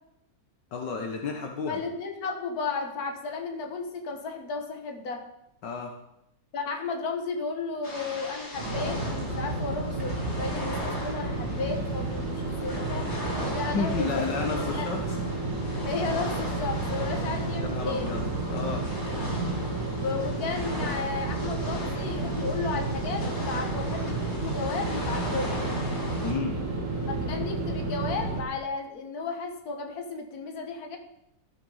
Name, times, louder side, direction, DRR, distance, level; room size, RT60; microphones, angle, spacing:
voice 1, 0.7-1.8 5.6-5.9 13.5-15.2 17.6-18.9 26.2-26.6, left 4 dB, 70° left, 2 dB, 1.8 m, -32 dB
voice 2, 1.7-5.3 6.5-13.1 13.5-14.9 15.8-18.1 19.9-25.6 27.1-31.0, left 4 dB, 55° left, 4 dB, 1.9 m, -34 dB
sound 1, 7.8-26.3, equal, 35° left, 3.1 m, -38 dB
sound 2, 8.5-28.4, right 2 dB, 45° right, 2.4 m, -31 dB
13.5 x 7.7 x 5.6 m, 0.84 s
omnidirectional pair, 2.0 m